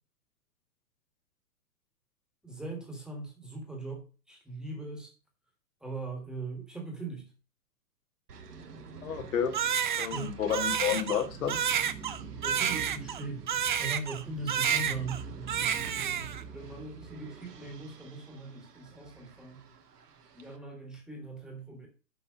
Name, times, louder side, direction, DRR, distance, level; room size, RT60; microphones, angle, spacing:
voice 1, 2.4-5.1 5.8-7.3 10.1-10.4 12.3-13.5 13.8-15.3 16.0-19.6 20.3-21.9, right 3 dB, ahead, 1 dB, 1.6 m, -40 dB
sound 1, 8.3-20.6, right 5 dB, 65° right, 1.5 m, -46 dB
voice 2, 9.0-9.5 10.0-11.6, left 8 dB, 55° left, 6 dB, 1.6 m, -30 dB
Crying sobbing, 9.5-14.2 14.5-15.2 15.5-16.4, right 8 dB, 30° right, 0.5 m, -30 dB
6.9 x 5.4 x 6.1 m, 0.35 s
figure-of-eight pair, 115°, 50 cm